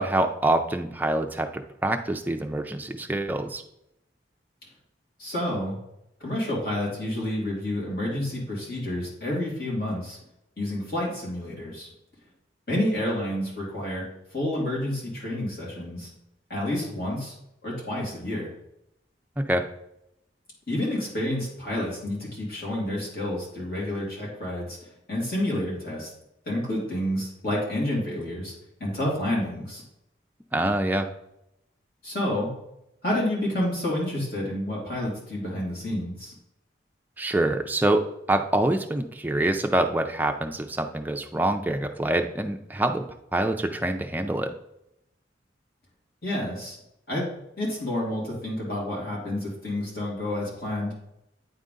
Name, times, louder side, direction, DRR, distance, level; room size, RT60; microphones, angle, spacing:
voice 1, 0.0-1.5 1.8-3.6 19.5-19.6 30.5-31.1 37.2-38.0 38.3-43.0 43.3-44.5, right 1 dB, 10° right, 4 dB, 0.4 m, -25 dB
voice 2, 5.2-5.8 6.2-10.2 10.6-11.9 12.7-14.0 14.3-16.1 16.5-17.3 17.6-18.5 20.7-24.8 25.1-26.1 26.5-28.5 28.8-29.8 32.0-32.5 33.0-36.3 46.2-46.8 47.1-47.3 47.6-51.0, left 1 dB, 55° left, -5 dB, 2.6 m, -29 dB
9.1 x 3.8 x 3.8 m, 0.84 s
head